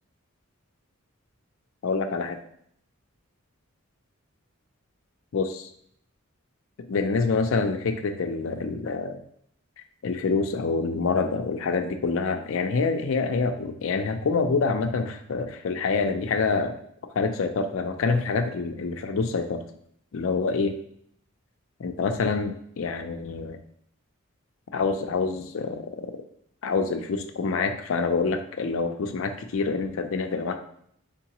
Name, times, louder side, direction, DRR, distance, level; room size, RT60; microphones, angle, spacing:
voice 1, 1.8-2.4 5.3-5.7 6.9-9.2 10.0-16.8 17.2-19.6 20.1-20.8 21.8-23.6 24.7-26.1 26.6-30.6, left 4 dB, 65° left, 6 dB, 0.4 m, -26 dB
3.8 x 3.6 x 2.9 m, 0.68 s
head